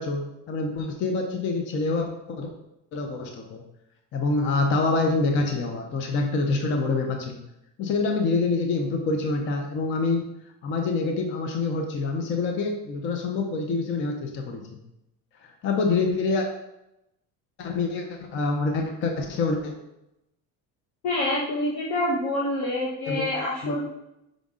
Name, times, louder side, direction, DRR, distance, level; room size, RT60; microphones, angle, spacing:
voice 1, 0.0-2.5 2.9-3.6 4.1-7.4 7.8-10.3 10.6-14.8 15.4-16.5 17.6-19.7 23.1-23.3 23.6-23.8, left 3 dB, 30° left, 3 dB, 0.5 m, -26 dB
voice 2, 21.0-23.8, left 1 dB, 70° left, -3 dB, 1.0 m, -26 dB
5.3 x 5.1 x 3.6 m, 0.88 s
cardioid pair, 180°, 39 cm